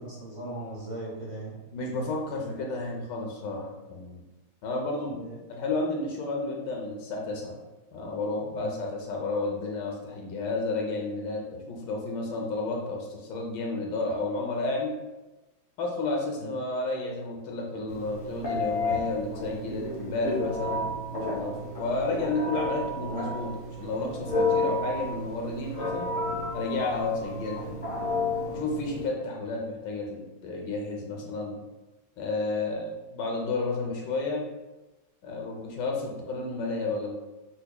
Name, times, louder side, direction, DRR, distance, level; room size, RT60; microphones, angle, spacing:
voice 1, 0.0-1.6 5.2-5.4 8.6-8.8 16.4-16.5 27.2-27.3, right 1 dB, 75° right, -7 dB, 2.3 m, -39 dB
voice 2, 1.7-4.2 4.6-5.2 5.5-7.6 7.9-14.9 15.8-20.9 21.3-23.5 23.8-26.1 26.5-27.7 28.5-31.6 32.2-34.4 35.2-37.1, left 3 dB, 75° left, -1 dB, 1.3 m, -31 dB
Telephone, 17.9-29.1, left 2 dB, 50° left, 0.7 m, -31 dB
5.7 x 2.1 x 2.2 m, 1.1 s
omnidirectional pair, 2.1 m